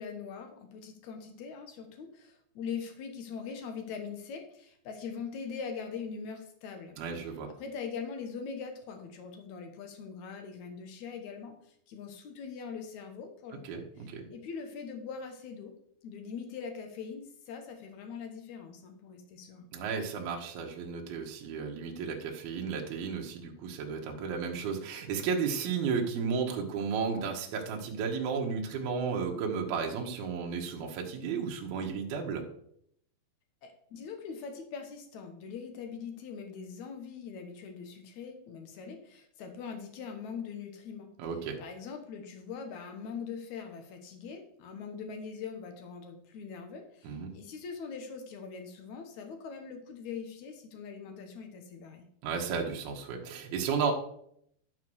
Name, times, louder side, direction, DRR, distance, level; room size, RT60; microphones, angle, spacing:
voice 1, 0.0-7.0 7.6-11.5 11.9-13.8 14.3-15.7 16.0-19.7 33.6-41.1 41.6-52.1, left 6 dB, 75° left, 5 dB, 1.7 m, -42 dB
voice 2, 7.0-7.5 13.6-14.3 19.7-32.4 41.2-41.6 47.0-47.3 52.2-53.9, right 6 dB, 65° right, 1 dB, 2.9 m, -33 dB
12.0 x 4.7 x 6.3 m, 0.69 s
omnidirectional pair, 5.1 m